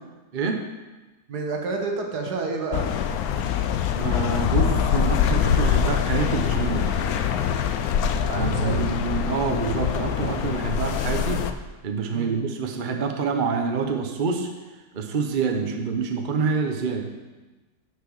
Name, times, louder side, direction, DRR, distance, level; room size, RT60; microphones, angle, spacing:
voice 1, 0.3-0.6 3.9-6.9 8.4-11.4 11.8-14.5 14.9-17.1, right 5 dB, 40° right, 4 dB, 0.8 m, -27 dB
voice 2, 1.3-2.9 8.1-8.9 12.1-12.4 15.6-15.7, right 3 dB, 70° right, 1 dB, 1.9 m, -30 dB
sound 1, 2.7-11.5, left 8 dB, 70° left, 1.0 m, -24 dB
8.6 x 6.3 x 6.4 m, 1.2 s
omnidirectional pair, 1.8 m